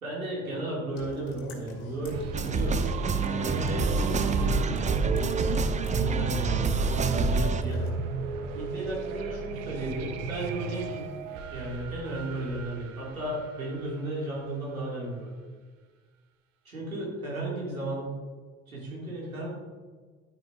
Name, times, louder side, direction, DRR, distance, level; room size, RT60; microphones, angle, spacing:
voice 1, 0.0-2.9 3.2-7.9 8.5-15.3 16.6-18.1 18.7-19.5, right 2 dB, 85° right, -4 dB, 2.7 m, -34 dB
sound 1, 0.9-7.9, left 2 dB, 60° left, 2.5 m, -46 dB
sound 2, 2.0-14.7, right 4 dB, 65° right, 1.1 m, -37 dB
sound 3, 2.3-7.6, right 4 dB, 20° right, 0.5 m, -27 dB
11.5 x 8.9 x 2.7 m, 1.5 s
figure-of-eight pair, 60°, 40 cm